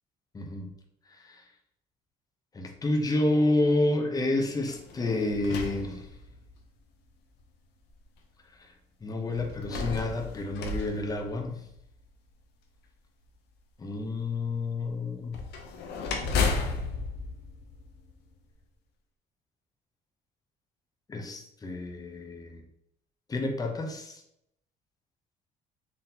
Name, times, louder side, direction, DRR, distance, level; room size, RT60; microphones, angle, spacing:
voice 1, 0.3-0.7 1.3-1.4 2.5-6.0 9.0-11.6 13.8-15.4 21.1-22.6 23.3-24.2, left 2 dB, 20° left, 3 dB, 0.7 m, -29 dB
sound 1, 4.6-6.6 7.4-7.5 9.3-11.9 15.3-18.4, left 4 dB, 85° left, 0.7 m, -33 dB
4.1 x 3.6 x 2.7 m, 0.78 s
cardioid pair, 110°, 17 cm